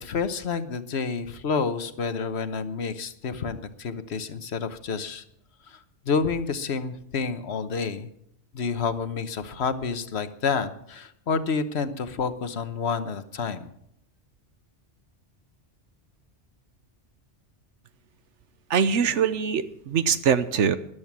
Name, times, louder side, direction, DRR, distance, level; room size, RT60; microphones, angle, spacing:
voice 1, 0.0-5.2 5.7-8.1 8.5-13.7, left 5 dB, 65° left, 11 dB, 1.3 m, -29 dB
voice 2, 18.7-20.8, right 7 dB, 85° right, 13 dB, 1.2 m, -23 dB
14.0 x 11.5 x 6.1 m, 0.73 s
omnidirectional pair, 1.2 m